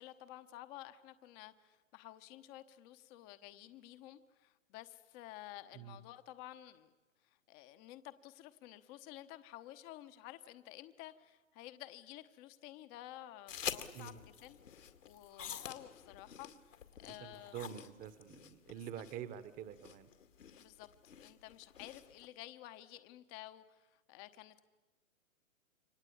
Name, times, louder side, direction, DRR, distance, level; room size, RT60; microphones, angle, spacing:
voice 1, 0.0-6.9 7.2-17.6 18.8-18.9 20.6-24.6, left 14 dB, 25° left, 11 dB, 1.0 m, -52 dB
sound 1, 13.5-22.3, left 8 dB, 70° left, 2.4 m, -48 dB
voice 2, 17.0-20.1, right 10 dB, 20° right, 14 dB, 1.2 m, -47 dB
28.0 x 24.5 x 8.7 m, 1.2 s
hypercardioid pair, 135°, 39 cm